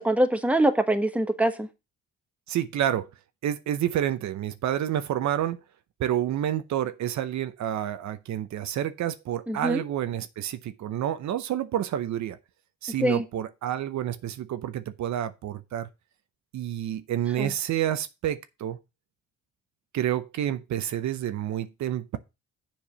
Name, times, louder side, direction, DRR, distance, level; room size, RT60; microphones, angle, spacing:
voice 1, 0.0-1.7 9.5-9.8 13.0-13.2 17.4-17.5, right 1 dB, 5° right, 1.1 m, -24 dB
voice 2, 2.5-3.1 3.4-5.6 6.0-12.4 12.8-15.9 16.5-18.8 19.9-22.2, right 11 dB, 65° right, 0.7 m, -29 dB
7.3 x 4.7 x 6.7 m
cardioid pair, 90°, 30 cm